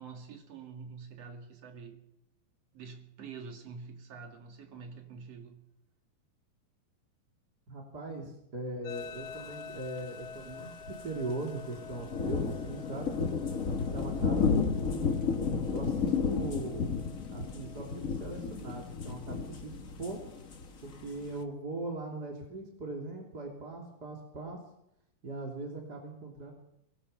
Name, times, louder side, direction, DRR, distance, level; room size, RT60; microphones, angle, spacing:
voice 1, 0.0-2.1 2.7-5.7, right 5 dB, 50° right, 3.4 m, -46 dB
voice 2, 7.7-13.1 13.8-15.4 15.7-16.9 17.3-20.2 20.8-24.6 25.2-26.5, right 2 dB, 30° right, 3.5 m, -40 dB
sound 1, 8.8-17.9, left 5 dB, 90° left, 2.8 m, -49 dB
sound 2, 9.8-9.9 10.0-10.1 10.5-10.7 10.9-11.3 11.8-21.4, left 5 dB, 45° left, 1.0 m, -32 dB
23.5 x 18.5 x 6.8 m
omnidirectional pair, 3.8 m